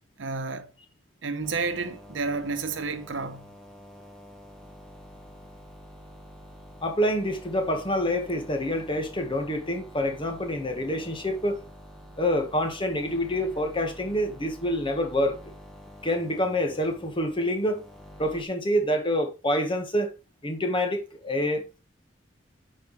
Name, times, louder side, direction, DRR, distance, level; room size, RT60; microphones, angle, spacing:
voice 1, 0.2-0.7 1.2-3.5, right 4 dB, 80° right, 0.9 m, -31 dB
sound 1, 1.4-18.4, equal, 5° left, 1.4 m, -48 dB
voice 2, 6.8-11.6 12.2-15.5 16.0-17.8 18.2-20.1 20.4-21.8, equal, 25° left, 1.5 m, -27 dB
9.4 x 4.6 x 3.2 m
head